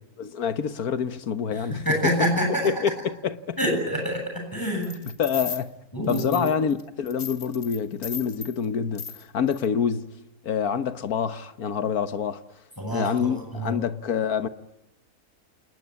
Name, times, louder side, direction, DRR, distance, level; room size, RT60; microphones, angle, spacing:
voice 1, 0.2-2.3 2.6-3.6 5.0-5.7 6.1-10.1 10.4-12.4 12.9-14.5, left 7 dB, 75° left, 1.7 m, -27 dB
voice 2, 1.5-2.6 3.6-4.9 5.9-6.4 12.8-13.7, equal, 10° left, 7.5 m, -27 dB
sound 1, 4.8-5.6 6.1-6.8 7.1-8.5 8.9-9.2 9.5-9.7, left 6 dB, 55° left, 3.2 m, -37 dB
28.5 x 20.0 x 9.9 m
omnidirectional pair, 1.6 m